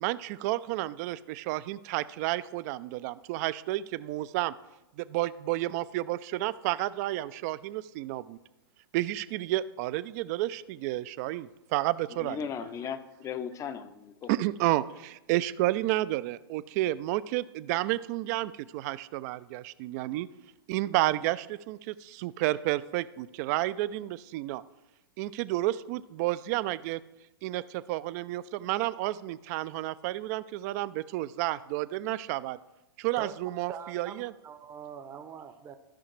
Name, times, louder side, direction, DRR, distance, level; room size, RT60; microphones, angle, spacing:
voice 1, 0.0-4.5 5.0-8.4 8.9-12.4 14.3-20.3 20.7-24.6 25.2-27.0 27.4-32.6 33.0-34.3, right 16 dB, 45° right, 0.4 m, -31 dB
voice 2, 12.2-14.3, left 7 dB, 25° left, 0.6 m, -37 dB
voice 3, 33.7-35.8, right 7 dB, 20° right, 0.7 m, -43 dB
13.5 x 5.7 x 3.2 m
hypercardioid pair, 110°, 12 cm